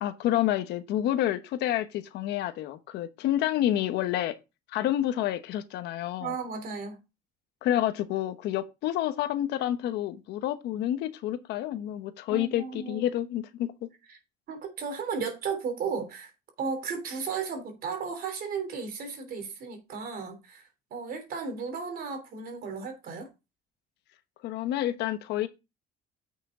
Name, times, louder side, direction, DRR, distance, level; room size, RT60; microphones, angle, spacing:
voice 1, 0.0-4.3 4.7-6.3 7.6-13.9 24.4-25.5, left 12 dB, 80° left, 1.1 m, -29 dB
voice 2, 6.2-7.0 12.3-13.1 14.1-14.2 14.5-16.3 16.6-23.3, right 5 dB, 60° right, 3.2 m, -35 dB
8.5 x 6.3 x 3.7 m
cardioid pair, 110°, 17 cm